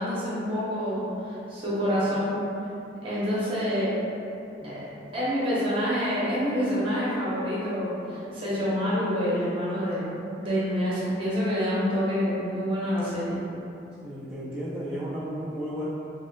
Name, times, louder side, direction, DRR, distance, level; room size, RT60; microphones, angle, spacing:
voice 1, 0.0-2.3 3.0-3.9 4.6-4.8 5.1-10.1 10.4-13.4, equal, 30° right, -9 dB, 1.1 m, -27 dB
voice 2, 14.0-15.9, equal, 10° right, -11 dB, 0.4 m, -34 dB
4.1 x 3.0 x 2.3 m, 2.8 s
head